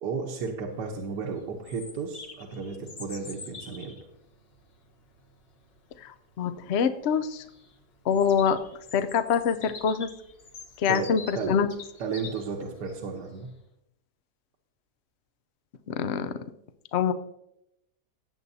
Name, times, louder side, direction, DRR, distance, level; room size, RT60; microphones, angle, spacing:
voice 1, 0.0-4.0 10.9-11.6 12.0-13.6, right 5 dB, 75° right, 1 dB, 1.5 m, -33 dB
Bird vocalization bird call bird song, 0.7-13.4, left 4 dB, 40° left, 1.1 m, -47 dB
voice 2, 6.0-7.4 8.1-8.6 8.9-10.1 10.8-11.7 15.9-16.3 16.9-17.1, left 7 dB, 65° left, 10 dB, 0.6 m, -25 dB
17.0 x 7.8 x 2.7 m, 0.81 s
omnidirectional pair, 1.9 m